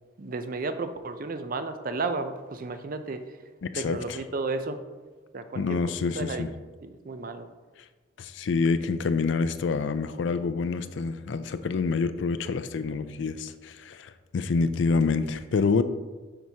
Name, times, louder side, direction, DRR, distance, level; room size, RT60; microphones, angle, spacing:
voice 1, 0.2-3.2 3.8-4.8 5.3-5.8 6.0-6.5 6.8-7.5, right 3 dB, 45° right, 9 dB, 0.5 m, -33 dB
voice 2, 3.6-4.2 5.5-6.5 8.2-15.8, left 4 dB, 65° left, 11 dB, 0.4 m, -27 dB
7.4 x 6.1 x 2.8 m, 1.3 s
head